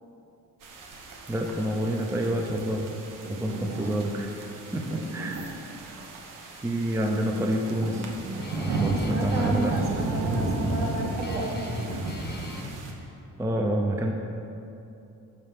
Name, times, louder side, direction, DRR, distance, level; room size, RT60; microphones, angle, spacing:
sound 1, 0.6-12.9, right 2 dB, 75° right, 1.0 m, -34 dB
voice 1, 1.0-2.9 3.3-4.3 4.7-5.5 6.6-8.1 8.6-9.7 13.4-14.1, right 1 dB, 10° right, 1 dB, 0.5 m, -28 dB
voice 2, 3.2-4.2 4.9-5.5 8.8-12.0, right 2 dB, 55° right, -1 dB, 1.4 m, -33 dB
Guitar, 7.0-12.7, left 2 dB, 30° left, 0.8 m, -39 dB
12.5 x 4.3 x 3.6 m, 2.7 s
cardioid pair, 110°, 33 cm